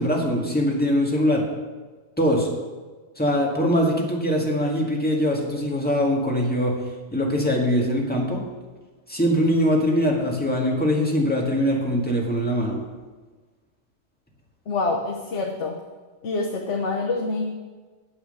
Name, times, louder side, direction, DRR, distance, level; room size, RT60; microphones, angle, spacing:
voice 1, 0.0-1.5 2.2-2.5 3.2-6.8 7.1-8.4 9.1-12.8, equal, 10° left, -2 dB, 1.8 m, -22 dB
voice 2, 14.7-15.7 16.2-17.4, left 3 dB, 80° left, 0 dB, 1.3 m, -26 dB
8.8 x 7.9 x 6.6 m, 1.3 s
omnidirectional pair, 1.2 m